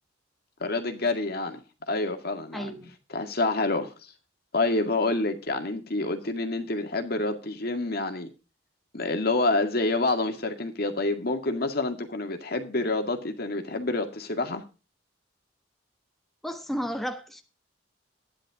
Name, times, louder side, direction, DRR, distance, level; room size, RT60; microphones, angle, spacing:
voice 1, 0.6-1.6 1.9-2.7 3.1-3.9 4.5-8.3 8.9-14.6, left 2 dB, 55° left, 2.1 m, -27 dB
voice 2, 2.5-2.9 16.4-17.4, equal, ahead, 1.3 m, -33 dB
13.0 x 10.5 x 3.7 m
head